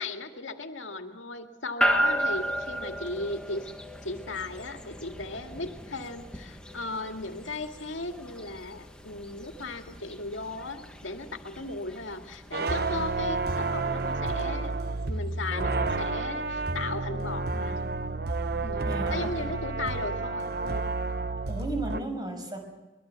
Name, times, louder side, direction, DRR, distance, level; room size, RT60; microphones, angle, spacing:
voice 1, 0.0-3.7 4.0-14.7 15.1-17.8 18.6-20.9, left 2 dB, 80° left, 5 dB, 2.1 m, -36 dB
sound 1, 1.8-16.1, equal, 5° left, 1.5 m, -35 dB
sound 2, 12.5-22.0, right 3 dB, 50° right, 0.9 m, -30 dB
voice 2, 18.8-19.3 21.5-22.6, right 1 dB, 20° right, 4 dB, 5.9 m, -34 dB
24.5 x 22.0 x 8.1 m, 1.1 s
head